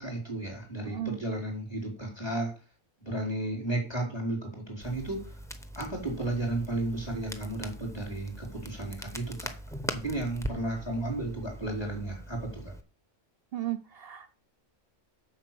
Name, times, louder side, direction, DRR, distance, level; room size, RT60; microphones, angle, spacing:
voice 1, 0.0-2.5 3.0-5.3 5.8-9.5 9.9-12.7, right 1 dB, 20° left, -1 dB, 4.0 m, -33 dB
voice 2, 0.8-1.2 13.5-14.3, right 14 dB, 60° right, 11 dB, 0.7 m, -35 dB
Crackle, 4.8-12.8, equal, 5° left, 0.7 m, -41 dB
7.9 x 5.6 x 7.6 m, 0.36 s
omnidirectional pair, 1.3 m